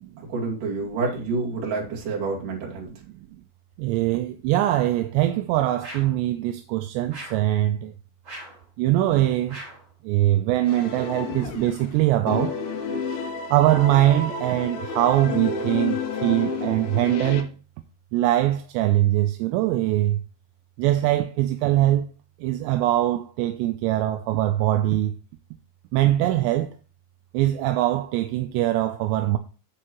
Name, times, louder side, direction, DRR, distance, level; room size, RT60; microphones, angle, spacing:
voice 1, 0.3-2.9, right 3 dB, 50° right, 3.3 m, -28 dB
voice 2, 3.8-7.9 8.8-9.6 10.0-12.6 13.5-17.5 18.1-20.2 20.8-22.1 22.4-25.1 25.9-26.7 27.3-29.4, right 14 dB, 80° right, 2.6 m, -22 dB
sound 1, 5.8-6.2 7.1-7.5 8.2-8.6 9.5-9.9, right 1 dB, 35° right, 3.7 m, -40 dB
sound 2, 10.7-11.9 12.3-17.4, left 4 dB, 75° left, 3.6 m, -30 dB
13.5 x 4.5 x 3.0 m
omnidirectional pair, 5.4 m